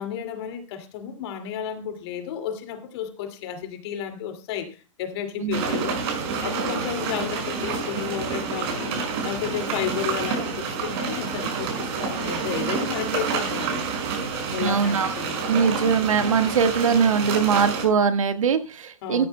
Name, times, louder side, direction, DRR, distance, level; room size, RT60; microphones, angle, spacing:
voice 1, 0.0-6.0 6.4-13.8 14.5-15.4 19.0-19.3, left 9 dB, 50° left, 2.3 m, -32 dB
sound 1, 5.5-17.8, right 5 dB, 50° right, 5.6 m, -28 dB
voice 2, 14.6-15.1 15.5-19.3, right 6 dB, 80° right, 1.5 m, -21 dB
14.5 x 13.5 x 2.2 m
hypercardioid pair, 125°, 17 cm